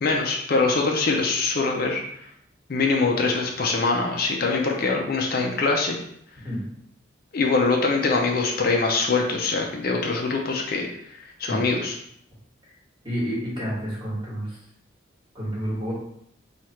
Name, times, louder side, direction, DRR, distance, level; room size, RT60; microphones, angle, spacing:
voice 1, 0.0-2.0 2.7-6.0 7.3-12.0, left 3 dB, 50° left, 1 dB, 0.5 m, -23 dB
voice 2, 13.0-14.6 15.3-15.9, equal, 25° right, -6 dB, 1.3 m, -29 dB
3.2 x 2.4 x 4.2 m, 0.72 s
head